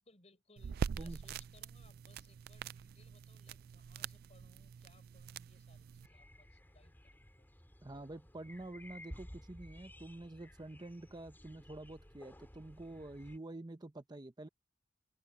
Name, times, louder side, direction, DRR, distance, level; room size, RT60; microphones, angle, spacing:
voice 1, 0.0-7.6, left 3 dB, 35° left, 7.3 m, -67 dB
sound 1, 0.6-6.1, right 6 dB, 55° right, 0.3 m, -44 dB
sound 2, 6.0-13.4, equal, 10° left, 3.4 m, -55 dB
voice 2, 7.8-14.5, right 2 dB, 25° right, 0.7 m, -48 dB
open air
head